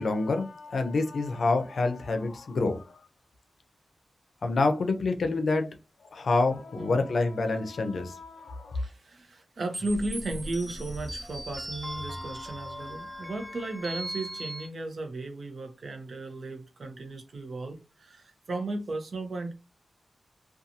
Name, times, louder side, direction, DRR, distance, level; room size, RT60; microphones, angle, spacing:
voice 1, 0.0-3.0 4.4-5.7 6.1-8.8, left 3 dB, 70° left, 0.5 m, -27 dB
voice 2, 6.8-7.1 8.7-19.5, right 2 dB, 65° right, 0.6 m, -35 dB
sound 1, 9.7-14.7, equal, 5° right, 0.5 m, -38 dB
2.6 x 2.3 x 2.7 m
wide cardioid pair, 105°, 0 cm